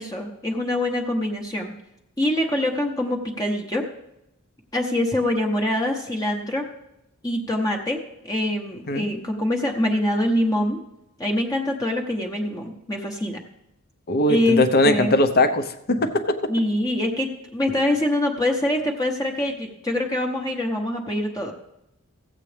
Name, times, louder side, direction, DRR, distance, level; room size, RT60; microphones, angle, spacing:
voice 1, 0.0-1.7 2.2-3.9 4.7-6.7 7.2-10.8 11.2-13.4 14.3-15.1 16.5-21.5, left 1 dB, 15° left, 1 dB, 0.9 m, -24 dB
voice 2, 14.1-16.4, left 1 dB, 45° left, 9 dB, 0.8 m, -20 dB
15.0 x 8.2 x 3.4 m, 0.84 s
head